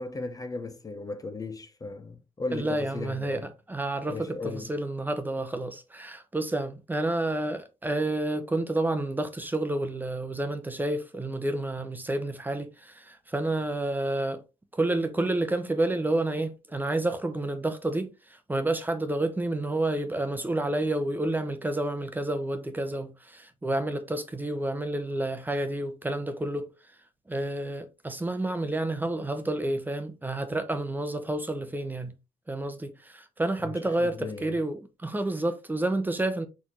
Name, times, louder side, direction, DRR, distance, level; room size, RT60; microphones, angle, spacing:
voice 1, 0.0-3.5 4.1-4.7 33.6-34.6, left 3 dB, 25° left, 0.7 m, -36 dB
voice 2, 2.5-14.4 14.7-18.1 18.5-26.7 27.3-32.1 32.5-36.5, right 2 dB, 15° right, 0.9 m, -29 dB
4.3 x 3.6 x 2.9 m
cardioid pair, 75°, 14 cm